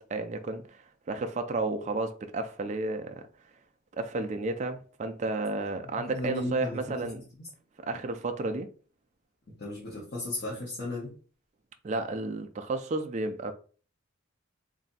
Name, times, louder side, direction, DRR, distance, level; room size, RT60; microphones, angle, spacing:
voice 1, 0.0-3.2 4.0-7.2 7.8-8.7 11.8-13.5, right 2 dB, 35° right, 0.3 m, -32 dB
voice 2, 6.0-7.1 7.4-7.5 9.6-11.1, left 1 dB, 50° left, 1.1 m, -35 dB
3.2 x 2.7 x 4.0 m
head